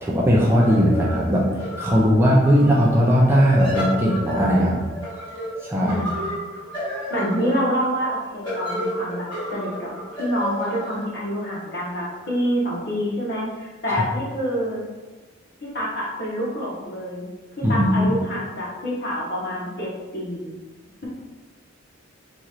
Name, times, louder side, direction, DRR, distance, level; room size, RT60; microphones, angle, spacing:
voice 1, 0.0-1.5 1.8-4.8 5.6-6.0 13.9-14.0 17.6-18.1, equal, 10° right, -5 dB, 0.4 m, -18 dB
sound 1, 0.6-12.2, equal, 20° left, 1.3 m, -32 dB
voice 2, 5.8-6.4 7.1-9.9 10.2-14.8 15.6-17.3 17.7-20.5, equal, 50° left, -5 dB, 1.0 m, -27 dB
4.2 x 3.0 x 2.4 m, 1.2 s
head